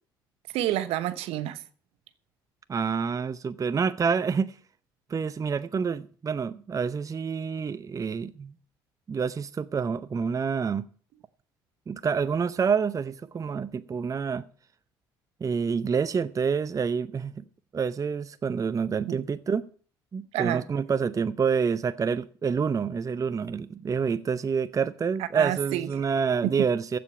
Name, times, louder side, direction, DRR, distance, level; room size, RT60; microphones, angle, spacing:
voice 1, 0.5-1.6 19.1-19.2 20.3-20.6 25.3-25.9 26.4-26.5, right 13 dB, 65° right, 1.1 m, -28 dB
voice 2, 2.7-4.5 5.1-8.5 9.1-10.9 11.9-14.5 15.4-17.3 17.7-19.7 20.1-27.0, right 6 dB, 30° right, 0.7 m, -27 dB
15.0 x 5.2 x 8.7 m
hypercardioid pair, 60°, 11 cm